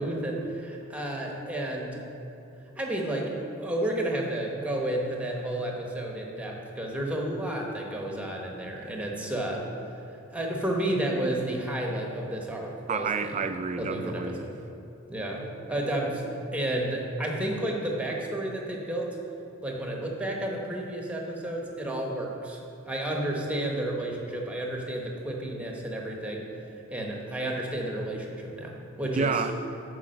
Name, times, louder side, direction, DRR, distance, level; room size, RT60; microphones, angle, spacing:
voice 1, 0.0-2.0 2.8-3.3 3.6-9.6 10.3-13.4 13.8-14.5 15.1-19.2 19.6-22.6 22.9-26.4 26.9-29.4, right 1 dB, 5° right, 1.0 m, -31 dB
voice 2, 12.9-14.5 29.1-29.5, right 5 dB, 35° right, 0.3 m, -29 dB
8.6 x 4.8 x 6.4 m
head